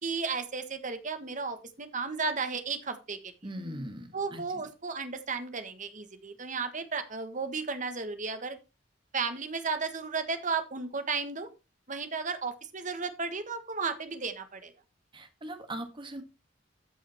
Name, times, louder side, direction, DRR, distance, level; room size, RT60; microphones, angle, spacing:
voice 1, 0.0-3.3 4.1-8.6 9.1-11.5 11.9-14.7, right 4 dB, 40° right, 9 dB, 1.4 m, -34 dB
voice 2, 3.4-4.6 15.1-16.2, right 1 dB, 25° right, 7 dB, 1.7 m, -40 dB
14.0 x 5.0 x 4.3 m, 0.27 s
head